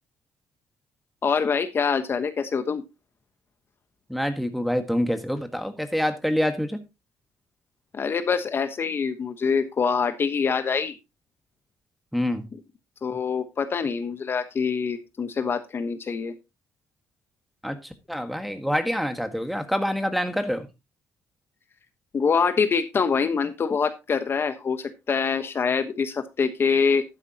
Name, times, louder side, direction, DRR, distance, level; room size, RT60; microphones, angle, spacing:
voice 1, 1.2-2.8 7.9-10.9 13.0-16.3 22.1-27.0, left 5 dB, 40° left, 1.2 m, -25 dB
voice 2, 4.1-6.8 12.1-12.4 17.6-17.8 18.1-20.7, equal, ahead, 1.7 m, -26 dB
11.5 x 9.9 x 2.9 m
cardioid pair, 100°, 6 cm